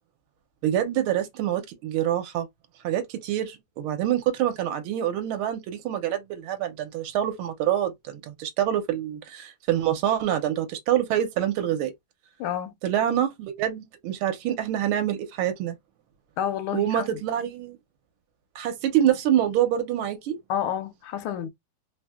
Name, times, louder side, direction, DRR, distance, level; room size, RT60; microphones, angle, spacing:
voice 1, 0.6-2.5 2.8-11.9 12.8-15.8 16.7-17.8 18.5-20.4, right 11 dB, 85° right, 1.5 m, -26 dB
voice 2, 12.4-12.8 16.4-17.2 20.5-21.5, left 10 dB, 80° left, 1.4 m, -29 dB
3.7 x 2.7 x 2.3 m
omnidirectional pair, 2.4 m